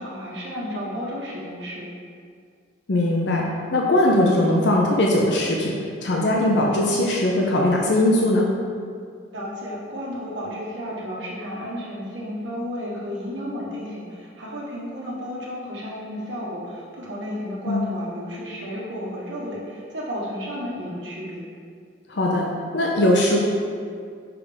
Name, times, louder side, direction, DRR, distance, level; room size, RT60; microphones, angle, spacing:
voice 1, 0.0-1.9 9.3-21.4, equal, 85° right, -4 dB, 1.4 m, -32 dB
voice 2, 2.9-3.5 3.7-5.8 6.0-8.5 17.7-17.8 22.1-23.4, left 1 dB, 70° left, -2 dB, 0.7 m, -20 dB
5.9 x 3.5 x 5.1 m, 2.2 s
head